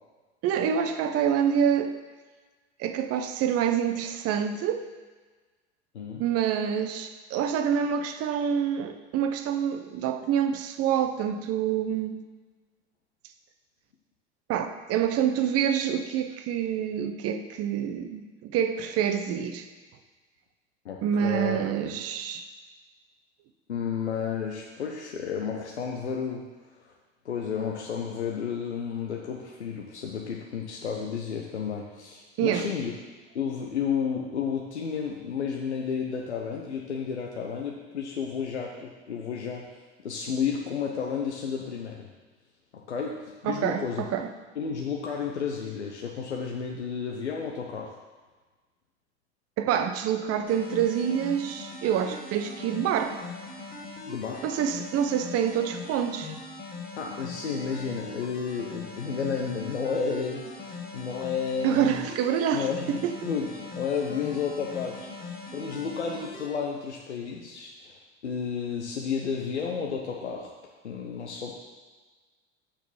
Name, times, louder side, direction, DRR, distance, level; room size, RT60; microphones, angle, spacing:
voice 1, 0.4-1.9 2.8-4.9 6.2-12.2 14.5-19.6 21.0-22.4 32.4-32.7 43.4-44.3 49.6-53.2 54.4-56.3 61.6-63.2, right 8 dB, 45° right, 8 dB, 0.9 m, -27 dB
voice 2, 5.9-6.2 20.8-21.7 23.7-26.5 27.2-32.9 33.3-39.8 40.0-42.1 42.7-44.0 44.6-47.9 54.1-54.4 57.0-62.1 62.5-63.0 63.2-65.1 65.5-70.5 70.8-71.6, left 6 dB, 85° left, -1 dB, 0.9 m, -32 dB
sound 1, 50.5-66.5, left 3 dB, 30° left, 2.2 m, -41 dB
6.8 x 6.0 x 7.0 m, 1.3 s
figure-of-eight pair, 70°, 33 cm